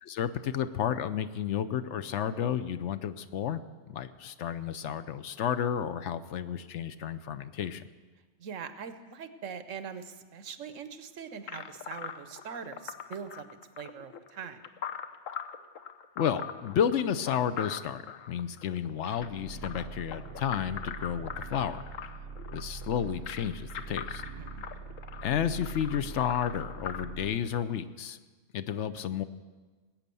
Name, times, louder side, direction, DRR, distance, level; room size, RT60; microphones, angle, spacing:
voice 1, 0.0-3.6 3.9-7.8 16.2-18.0 18.3-21.8 22.5-24.2 25.2-28.2 28.5-29.2, left 9 dB, 70° left, 11 dB, 0.9 m, -31 dB
voice 2, 8.4-13.4 13.8-14.6 24.4-24.6, right 7 dB, 75° right, 11 dB, 1.2 m, -42 dB
sound 1, 11.5-27.0, left 8 dB, 90° left, 1.2 m, -42 dB
sound 2, 19.2-27.4, right 5 dB, 60° right, 1.3 m, -43 dB
19.0 x 8.7 x 6.8 m, 1.4 s
omnidirectional pair, 1.3 m